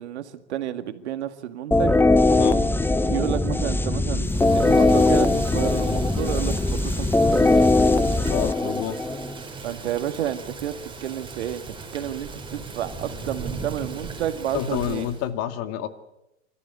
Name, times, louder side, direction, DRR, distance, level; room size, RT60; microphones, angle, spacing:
voice 1, 0.0-2.0 3.0-7.6 9.6-10.8 11.0-15.1, right 11 dB, 80° right, 9 dB, 2.0 m, -31 dB
sound 1, 1.7-9.4, left 2 dB, 5° left, 0.9 m, -20 dB
Thunder / Rain, 4.2-15.3, right 4 dB, 15° right, 4.6 m, -37 dB
voice 2, 8.3-9.0 14.5-15.9, left 10 dB, 50° left, 9 dB, 2.3 m, -28 dB
27.0 x 14.0 x 8.2 m, 0.89 s
hypercardioid pair, 110°, 33 cm